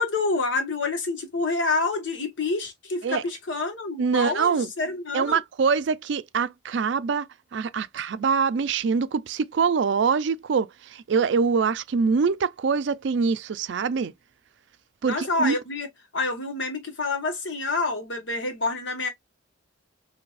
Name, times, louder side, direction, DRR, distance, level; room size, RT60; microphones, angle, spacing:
voice 1, 0.0-5.4 15.0-15.9 16.1-19.1, left 3 dB, 75° left, 1.4 m, -27 dB
voice 2, 4.0-4.7 5.1-14.1 15.0-15.6, right 5 dB, 65° right, 0.4 m, -24 dB
4.7 x 2.7 x 2.4 m
head